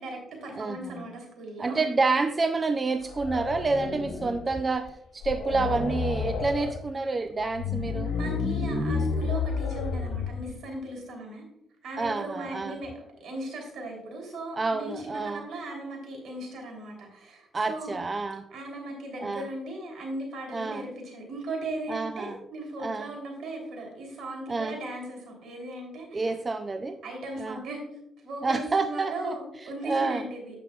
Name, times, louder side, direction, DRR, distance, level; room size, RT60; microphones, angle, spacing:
voice 1, 0.0-1.8 8.1-11.4 11.8-12.9 13.2-18.0 18.5-26.2 27.0-27.8 28.2-30.5, right 1 dB, 70° right, 1 dB, 3.3 m, -37 dB
voice 2, 0.5-1.0 1.6-8.1 12.0-12.8 14.6-15.5 17.5-18.5 19.2-19.5 20.5-20.9 21.9-22.4 22.8-23.1 24.5-24.8 26.1-27.0 27.4-27.6 28.4-29.4 29.8-30.2, right 3 dB, 30° right, 9 dB, 0.4 m, -28 dB
sound 1, 3.0-4.5 4.9-5.0 5.2-6.8 7.4-10.5, left 4 dB, 85° left, 1.3 m, -30 dB
10.5 x 7.5 x 2.4 m, 0.85 s
cardioid pair, 90°, 0 cm